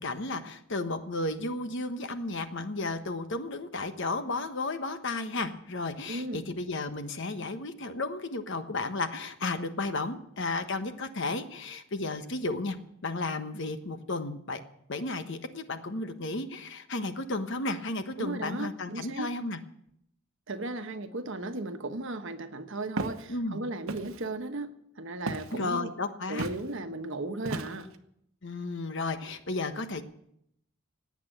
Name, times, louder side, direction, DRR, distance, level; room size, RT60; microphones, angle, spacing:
voice 1, 0.0-12.8 13.0-14.6 14.9-19.6 23.3-23.6 25.5-26.5 28.4-30.0, left 2 dB, 60° left, 9 dB, 1.2 m, -33 dB
voice 2, 6.1-6.4 18.2-19.3 20.5-24.7 25.0-25.9 26.3-27.9, right 2 dB, 60° right, 8 dB, 1.2 m, -36 dB
Walk footsteps, 23.0-23.2 23.9-24.2 25.3-25.6 26.4-26.6 27.4-28.0, right 2 dB, 75° right, 1.1 m, -35 dB
18.0 x 8.7 x 7.9 m, 0.75 s
head